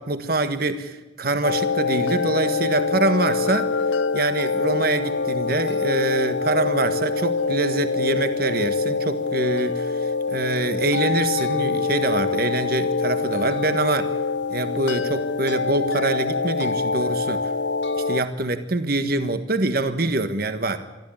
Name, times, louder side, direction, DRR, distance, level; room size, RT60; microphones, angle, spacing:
voice 1, 0.0-3.7 4.1-10.0 10.3-14.1 14.5-17.4 18.1-20.8, right 2 dB, 50° right, 10 dB, 1.5 m, -24 dB
sound 1, 1.4-18.2, left 4 dB, 65° left, 0.9 m, -25 dB
24.0 x 14.5 x 8.9 m, 1.1 s
head